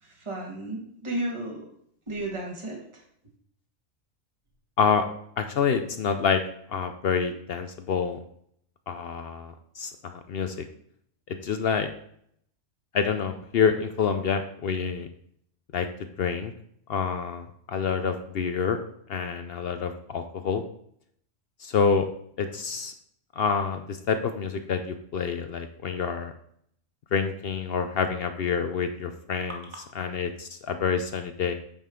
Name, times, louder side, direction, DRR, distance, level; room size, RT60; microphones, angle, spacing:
voice 1, 0.0-1.7 2.1-3.0 7.3-7.4, right 1 dB, 20° right, 0 dB, 1.5 m, -34 dB
voice 2, 5.4-6.4 6.7-8.2 8.9-10.7 11.3-11.9 12.9-15.1 15.7-15.9 16.2-16.5 16.9-18.8 19.1-20.6 21.6-22.1 22.4-22.9 23.4-26.3 27.1-29.6 30.0-31.5, left 6 dB, 60° left, 8 dB, 0.7 m, -27 dB
8.7 x 5.2 x 3.7 m, 0.68 s
omnidirectional pair, 1.4 m